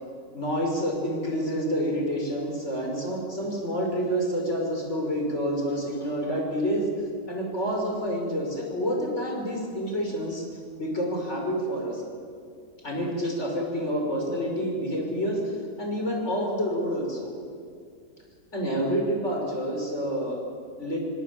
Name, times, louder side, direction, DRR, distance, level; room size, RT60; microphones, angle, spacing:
voice 1, 0.3-6.9 7.3-10.4 10.8-12.0 12.8-17.3 18.5-20.4 20.8-21.0, equal, 50° left, 1 dB, 6.3 m, -28 dB
26.5 x 24.5 x 8.8 m, 2.3 s
omnidirectional pair, 1.6 m